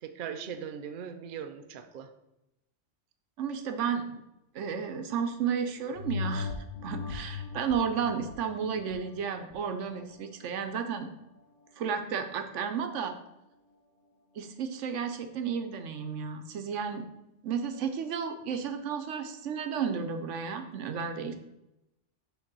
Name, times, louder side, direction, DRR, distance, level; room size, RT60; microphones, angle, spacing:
voice 1, 0.0-2.1, right 7 dB, 55° right, 8 dB, 0.6 m, -39 dB
voice 2, 3.4-4.0 4.5-6.5 6.8-11.1 11.8-13.1 14.4-17.1 17.4-21.3, right 6 dB, 90° right, 7 dB, 1.0 m, -32 dB
sound 1, 5.9-10.9 11.4-11.5, left 5 dB, 90° left, 1.2 m, -39 dB
6.4 x 3.3 x 6.0 m, 0.89 s
omnidirectional pair, 1.2 m